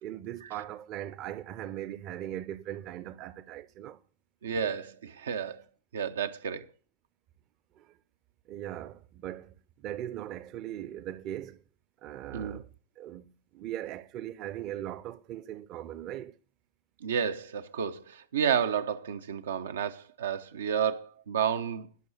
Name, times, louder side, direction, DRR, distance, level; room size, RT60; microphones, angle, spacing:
voice 1, 0.0-4.0 7.7-8.0 8.5-11.6 12.0-16.4, right 12 dB, 35° right, 0.8 m, -39 dB
voice 2, 4.4-5.6 5.9-6.7 12.3-12.6 17.0-21.9, right 7 dB, 65° right, 0.8 m, -31 dB
12.0 x 6.2 x 8.5 m
figure-of-eight pair, 90°, 0 cm